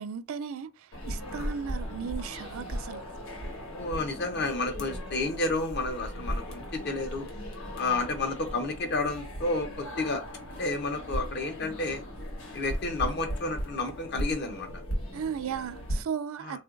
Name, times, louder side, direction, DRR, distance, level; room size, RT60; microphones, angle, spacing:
voice 1, 0.0-3.0 15.1-16.6, right 7 dB, 80° right, 0.3 m, -36 dB
sound 1, 0.9-16.0, equal, 80° left, 1.0 m, -37 dB
voice 2, 3.7-7.3 7.8-10.2 10.6-12.0 12.5-14.7 16.5-16.6, left 3 dB, 55° left, 0.7 m, -31 dB
3.7 x 2.4 x 2.4 m
head